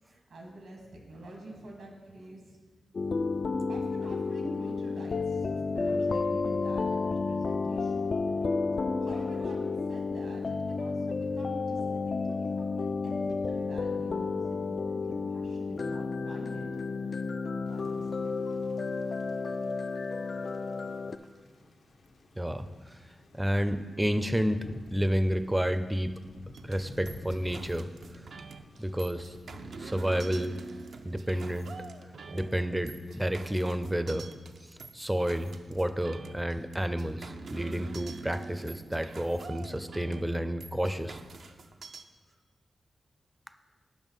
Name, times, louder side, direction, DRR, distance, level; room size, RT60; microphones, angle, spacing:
voice 1, 0.1-2.6 3.7-8.2 9.0-16.7 17.6-18.3, right 1 dB, 90° right, 1 dB, 1.7 m, -47 dB
sound 1, 2.9-21.2, left 4 dB, 55° left, 0.3 m, -31 dB
Thunder / Rain, 17.7-33.3, left 2 dB, 75° left, 0.8 m, -52 dB
voice 2, 23.3-24.7 24.9-26.2 26.6-27.9 28.1-28.3 28.8-29.4 29.8-30.6 31.0-31.7 32.3-34.3 34.9-41.2, equal, 10° right, 10 dB, 0.4 m, -30 dB
sound 2, 26.5-42.0, right 4 dB, 75° right, 0.4 m, -46 dB
7.1 x 5.6 x 5.5 m, 1.4 s
cardioid pair, 80°, 0 cm